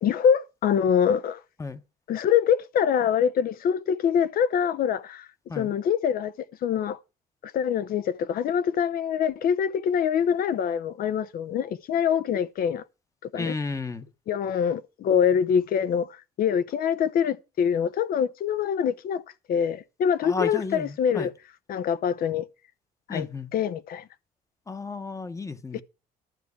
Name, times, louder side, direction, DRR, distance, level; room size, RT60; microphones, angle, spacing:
voice 1, 0.0-1.4 2.1-5.3 5.5-6.3 6.6-7.0 7.4-12.8 13.3-13.5 14.3-16.1 16.4-19.2 19.5-21.3 21.7-22.4 23.1-24.0 25.7-25.8, left 8 dB, 60° left, 0.8 m, -24 dB
voice 2, 13.3-14.1 20.2-21.3 23.1-23.5 24.7-25.8, left 3 dB, 20° left, 1.0 m, -33 dB
12.0 x 4.7 x 8.4 m
cardioid pair, 110°, 17 cm